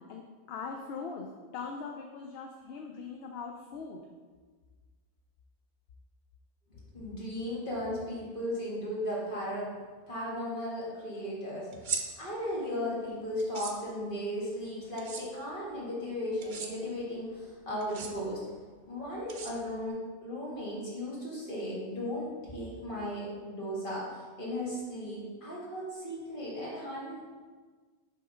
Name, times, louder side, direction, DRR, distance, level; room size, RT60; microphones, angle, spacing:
voice 1, 0.5-1.3 1.5-4.0, left 5 dB, 70° left, 2 dB, 0.8 m, -40 dB
voice 2, 6.7-9.7 10.1-18.4 18.8-27.4, equal, 50° left, -6 dB, 1.9 m, -36 dB
sound 1, 11.7-12.0 13.4-13.7 15.0-15.2 16.4-16.7 17.8-18.1 19.3-19.9, right 5 dB, 50° right, 0.7 m, -36 dB
5.2 x 3.7 x 5.5 m, 1.4 s
omnidirectional pair, 1.1 m